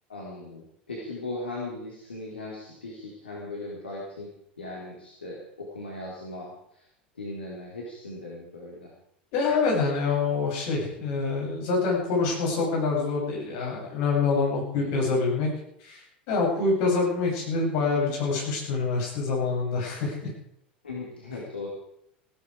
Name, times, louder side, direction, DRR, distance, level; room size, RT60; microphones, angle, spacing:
voice 1, 0.1-4.3 4.6-6.9 7.2-8.9 14.8-15.1 17.9-18.2 20.8-21.7, left 2 dB, 80° left, -4 dB, 3.8 m, -38 dB
voice 2, 9.3-15.5 15.8-20.3, left 4 dB, 55° left, -2 dB, 7.9 m, -26 dB
17.0 x 13.5 x 4.9 m, 0.73 s
figure-of-eight pair, 80°, 6 cm